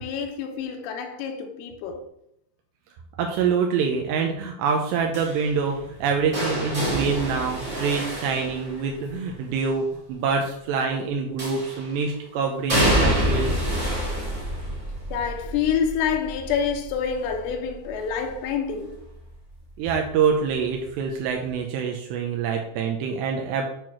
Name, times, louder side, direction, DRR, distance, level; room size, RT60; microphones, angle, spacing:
voice 1, 0.0-2.0 15.1-18.9, left 7 dB, 80° left, 3.4 m, -27 dB
voice 2, 3.2-13.7 19.8-23.7, right 5 dB, 85° right, 2.5 m, -25 dB
sound 1, 5.1-9.2 11.4-12.0 12.7-18.5 18.8-19.3 20.5-20.6, equal, 60° right, 0.7 m, -27 dB
8.8 x 3.0 x 6.1 m
omnidirectional pair, 5.7 m